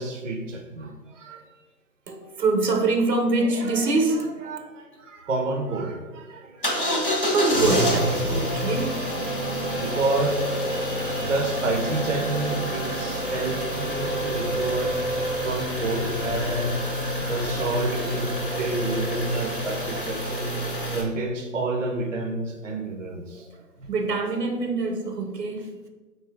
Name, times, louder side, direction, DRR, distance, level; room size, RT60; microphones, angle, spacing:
voice 1, 0.0-1.4 4.6-6.8 9.8-10.5 10.9-14.9 15.4-16.8 17.2-20.5 20.9-23.5 23.8-23.9, right 2 dB, 55° right, 0.5 m, -29 dB
voice 2, 2.1-4.6 7.3-9.0 10.7-11.3 19.3-19.6 22.7-22.8 23.9-25.7, right 3 dB, 85° right, 0.8 m, -25 dB
sound 1, 6.6-21.0, equal, 35° left, 0.5 m, -27 dB
3.7 x 2.6 x 4.0 m
figure-of-eight pair, 165°, 47 cm